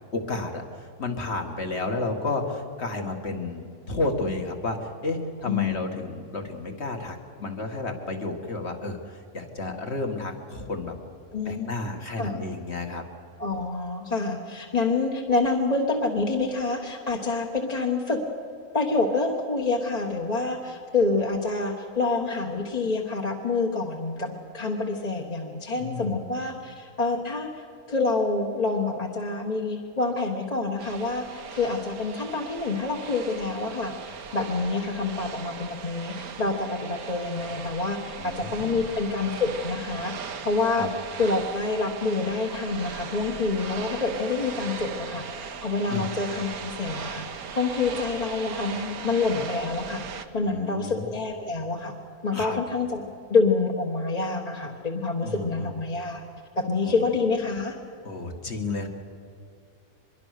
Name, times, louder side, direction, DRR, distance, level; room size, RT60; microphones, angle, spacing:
voice 1, 0.1-10.9 11.5-13.0 25.8-26.2 38.2-38.8 40.7-40.9 45.9-46.1 50.4-51.1 52.3-52.6 55.2-55.7 56.8-57.1 58.0-58.9, left 2 dB, 50° left, 3 dB, 2.3 m, -32 dB
voice 2, 5.5-6.0 11.3-11.7 12.2-12.4 13.4-18.2 18.7-40.1 40.4-40.9 41.2-50.0 50.3-51.9 52.2-56.2 56.6-57.7, left 3 dB, 30° left, 0 dB, 1.4 m, -27 dB
sound 1, 30.8-50.3, right 6 dB, 85° right, 1.6 m, -38 dB
24.5 x 22.0 x 6.7 m, 2.4 s
omnidirectional pair, 1.5 m